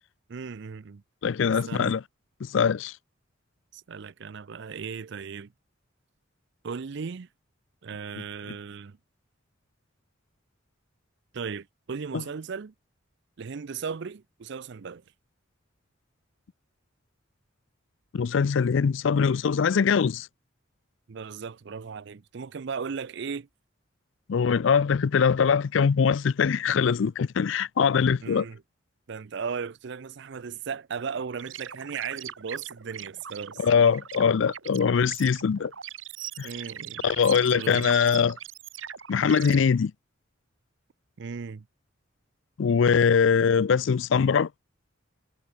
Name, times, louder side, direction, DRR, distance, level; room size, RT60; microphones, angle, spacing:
voice 1, 0.3-1.0 1.5-2.0 3.7-5.5 6.6-7.3 7.8-9.0 11.3-12.7 13.4-15.0 21.1-23.5 28.2-28.6 29.1-33.6 36.4-37.1 37.5-37.9 41.2-41.7, right 5 dB, 60° right, 0.5 m, -36 dB
voice 2, 1.2-2.0 2.4-3.0 12.1-12.2 18.1-20.3 24.3-28.5 33.6-35.7 36.4-36.5 37.0-38.4 39.1-39.9 42.6-44.5, left 6 dB, 65° left, 0.4 m, -22 dB
sound 1, 31.4-39.6, right 9 dB, 75° right, 2.3 m, -40 dB
head